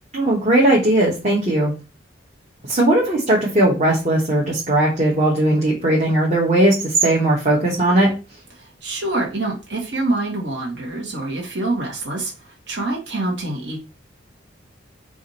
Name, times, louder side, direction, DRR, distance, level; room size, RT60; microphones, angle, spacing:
voice 1, 0.1-1.7 2.7-8.1, right 1 dB, 35° right, -4 dB, 1.1 m, -18 dB
voice 2, 8.6-13.8, right 2 dB, 65° right, -2 dB, 1.5 m, -26 dB
4.8 x 2.5 x 4.1 m, 0.32 s
head